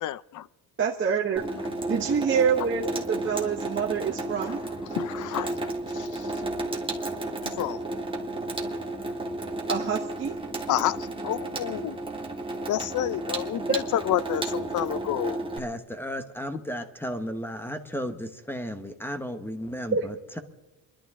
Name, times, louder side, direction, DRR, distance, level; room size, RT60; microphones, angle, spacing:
voice 1, 0.0-0.5 4.9-5.5 5.9-6.3 7.6-7.8 10.7-12.0 12.7-15.4, left 12 dB, 50° left, 19 dB, 0.6 m, -29 dB
voice 2, 0.8-1.4 1.9-4.6 9.7-10.4 13.7-13.8 19.9-20.0, right 6 dB, 30° right, -1 dB, 1.2 m, -26 dB
Water tap faucet / Sink (filling or washing), 1.4-15.6, right 2 dB, 15° right, 1.7 m, -32 dB
voice 3, 15.6-20.4, equal, 5° left, 8 dB, 1.2 m, -34 dB
27.5 x 11.5 x 3.7 m, 1.1 s
cardioid pair, 115°, 41 cm